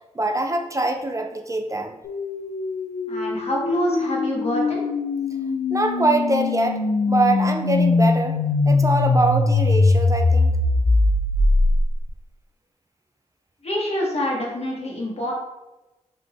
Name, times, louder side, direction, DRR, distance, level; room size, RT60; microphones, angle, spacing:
voice 1, 0.2-2.0 5.7-6.8 7.1-8.4 8.7-10.5, right 2 dB, 25° right, 4 dB, 0.3 m, -23 dB
sound 1, 2.0-12.1, left 3 dB, 70° left, 0.4 m, -21 dB
voice 2, 3.1-4.8 13.6-15.3, left 1 dB, 55° left, -3 dB, 1.2 m, -26 dB
3.3 x 3.3 x 2.5 m, 1.0 s
cardioid pair, 40°, 13 cm